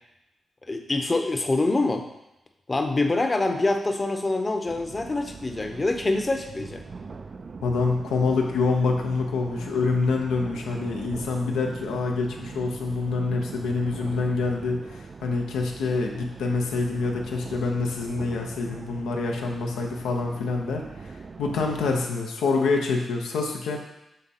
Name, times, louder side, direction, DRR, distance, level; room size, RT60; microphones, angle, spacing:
voice 1, 0.7-2.1 2.7-6.8, left 2 dB, 35° left, 5 dB, 0.8 m, -25 dB
sound 1, 4.7-22.1, right 4 dB, 50° right, 0.3 m, -41 dB
voice 2, 7.6-23.8, left 4 dB, 90° left, 1 dB, 0.8 m, -26 dB
6.6 x 3.5 x 4.2 m, 0.90 s
supercardioid pair, 45°, 0 cm